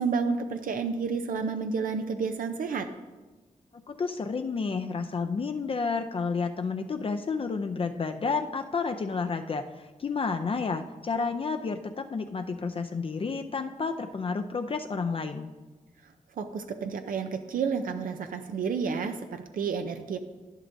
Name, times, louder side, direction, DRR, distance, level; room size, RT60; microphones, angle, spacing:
voice 1, 0.0-2.9 16.4-20.2, right 5 dB, 85° right, 6 dB, 0.6 m, -30 dB
voice 2, 3.9-15.5, left 4 dB, 40° left, 6 dB, 0.4 m, -31 dB
11.0 x 11.0 x 2.6 m, 1.2 s
wide cardioid pair, 95°, 14 cm